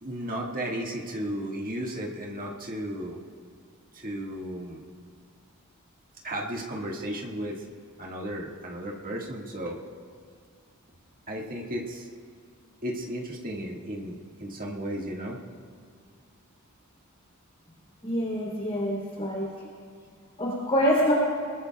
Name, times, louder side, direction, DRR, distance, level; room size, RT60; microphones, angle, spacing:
voice 1, 0.0-3.2 3.9-4.8 6.2-7.6 8.0-9.8 11.3-12.1 12.8-15.4, right 1 dB, 40° right, -1 dB, 1.8 m, -34 dB
voice 2, 18.0-19.5 20.4-21.1, equal, 30° left, -4 dB, 3.3 m, -26 dB
28.0 x 21.5 x 2.4 m, 2.1 s
head